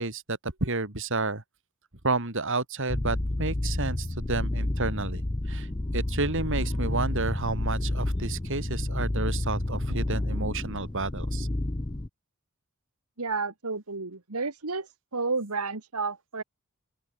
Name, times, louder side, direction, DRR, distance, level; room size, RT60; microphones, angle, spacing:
voice 1, 0.0-1.4 2.0-5.7 5.9-11.5, right 3 dB, 60° right, 3.1 m, -31 dB
sound 1, 2.9-12.1, left 1 dB, 20° left, 0.7 m, -30 dB
voice 2, 13.2-14.9 15.1-16.4, right 4 dB, 85° right, 2.2 m, -31 dB
open air
head